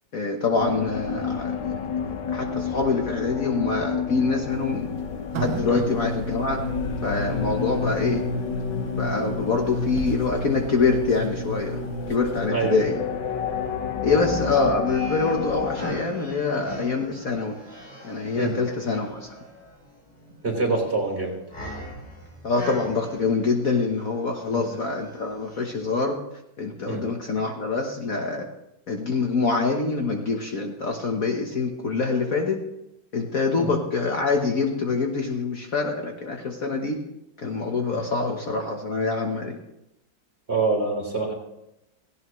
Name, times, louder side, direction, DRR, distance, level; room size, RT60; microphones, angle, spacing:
voice 1, 0.1-1.7 2.3-4.9 5.3-6.6 7.0-8.3 8.9-13.0 14.0-17.6 18.0-19.3 22.4-26.2 26.6-28.5 28.9-32.6 33.1-37.0 37.4-39.6, left 4 dB, 50° left, 2 dB, 1.5 m, -25 dB
sound 1, 0.5-15.9, left 7 dB, 70° left, 1.7 m, -30 dB
sound 2, 4.5-12.5, right 3 dB, 75° right, 1.7 m, -34 dB
voice 2, 12.5-12.8 14.1-14.4 18.4-18.5 20.4-21.4 24.5-24.6 26.9-27.0 33.6-33.7 37.9-38.0 40.5-41.3, right 3 dB, 35° right, -1 dB, 3.8 m, -26 dB
sound 3, 14.9-26.1, equal, 30° left, 4.2 m, -42 dB
17.0 x 16.5 x 3.2 m, 0.86 s
omnidirectional pair, 2.1 m